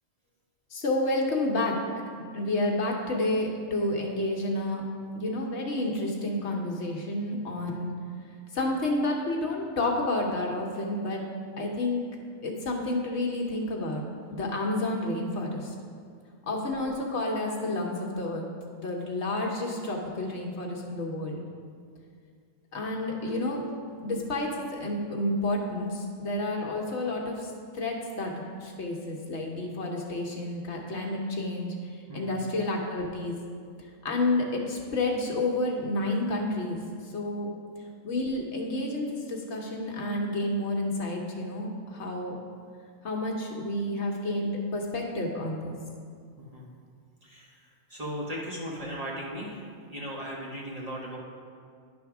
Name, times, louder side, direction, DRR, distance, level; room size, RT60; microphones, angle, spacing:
voice 1, 0.7-1.7 2.3-4.8 5.1-7.9 8.5-11.2 11.6-12.0 12.4-14.0 14.3-15.7 16.5-18.5 18.8-21.4 22.7-23.6 24.0-31.7 32.1-33.3 34.0-36.8 37.1-37.5 38.0-42.4 43.0-45.7, left 2 dB, 60° left, 0 dB, 1.1 m, -30 dB
sound 1, 23.3-24.0 25.7-25.8 26.0-26.2 26.6-26.7 27.2-27.3 28.1-28.8, right 3 dB, 20° left, 0.3 m, -43 dB
voice 2, 46.4-46.7 47.2-49.6 49.9-51.2, equal, 30° right, -5 dB, 1.3 m, -37 dB
10.5 x 3.5 x 5.9 m, 2.2 s
omnidirectional pair, 1.3 m